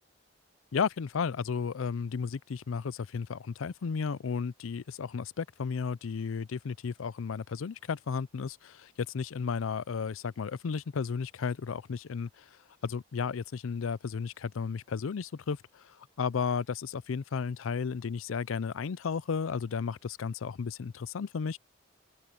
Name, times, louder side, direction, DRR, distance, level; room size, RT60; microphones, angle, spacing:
voice 1, 0.7-12.5 12.8-21.6, left 5 dB, 85° left, 0.5 m, -33 dB
head